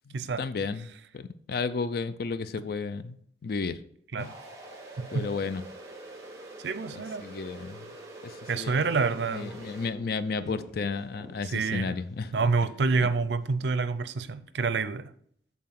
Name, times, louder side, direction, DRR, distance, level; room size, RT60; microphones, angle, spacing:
voice 1, 0.1-0.9 1.1-3.2 3.4-3.8 4.2-4.3 5.1-5.6 7.2-7.9 8.2-8.8 9.3-12.3, left 4 dB, 55° left, 0.4 m, -33 dB
sound 1, 4.2-9.9, right 2 dB, 15° right, 1.4 m, -45 dB
voice 2, 5.0-5.3 6.6-7.3 8.5-9.5 11.4-11.9 12.3-15.1, right 4 dB, 75° right, 0.5 m, -28 dB
sound 2, 9.1-14.0, left 1 dB, ahead, 0.7 m, -52 dB
7.6 x 4.1 x 5.8 m
head